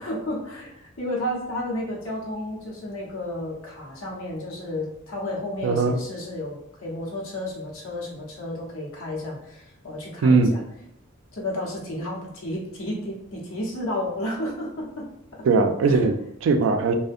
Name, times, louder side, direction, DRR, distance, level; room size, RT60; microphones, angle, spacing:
voice 1, 0.0-10.6 11.3-15.5 15.8-16.1, left 1 dB, 85° left, -3 dB, 0.7 m, -32 dB
voice 2, 5.6-6.0 10.2-10.5 15.4-17.0, right 4 dB, 70° right, 6 dB, 0.3 m, -20 dB
2.6 x 2.0 x 2.4 m, 0.77 s
head